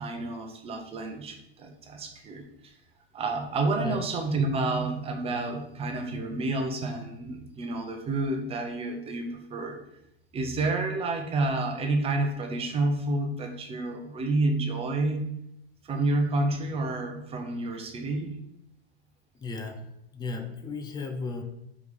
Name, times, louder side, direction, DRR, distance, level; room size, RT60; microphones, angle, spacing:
voice 1, 0.0-2.7 3.1-9.8 10.3-15.3 15.8-18.4, right 2 dB, 20° right, 3 dB, 1.1 m, -29 dB
voice 2, 19.3-21.4, left 3 dB, 15° left, 6 dB, 0.7 m, -35 dB
5.0 x 4.9 x 4.8 m, 0.79 s
figure-of-eight pair, 100°, 31 cm